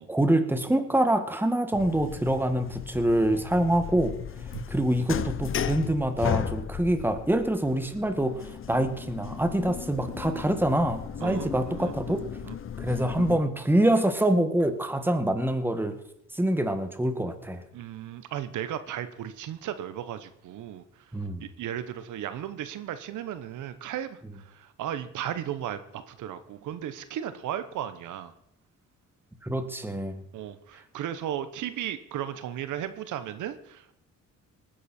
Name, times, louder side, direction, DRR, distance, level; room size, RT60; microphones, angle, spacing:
voice 1, 0.0-4.1 4.7-12.2 12.8-15.9 16.3-17.6 21.1-21.4 24.2-24.3 29.4-30.2, right 1 dB, 5° right, 8 dB, 1.7 m, -25 dB
sound 1, 1.7-13.4, left 8 dB, 45° left, 0.7 m, -35 dB
voice 2, 11.7-12.2 12.4-12.5 17.7-20.8 21.4-24.2 24.8-25.8 26.2-28.3 30.3-33.9, right 10 dB, 80° right, 12 dB, 1.0 m, -35 dB
19.0 x 10.0 x 4.3 m, 0.74 s
cardioid pair, 90°, 30 cm